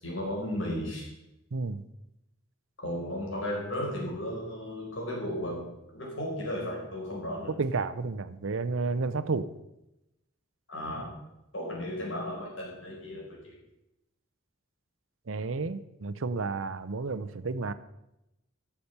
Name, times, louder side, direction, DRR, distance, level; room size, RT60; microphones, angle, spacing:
voice 1, 0.0-1.1 2.8-5.7 5.9-7.5 10.7-11.1 11.5-13.5, left 1 dB, 70° left, -3 dB, 4.6 m, -34 dB
voice 2, 1.5-1.8 7.5-9.5 15.3-17.7, right 4 dB, 85° right, 13 dB, 0.7 m, -31 dB
11.5 x 7.1 x 6.6 m, 0.90 s
head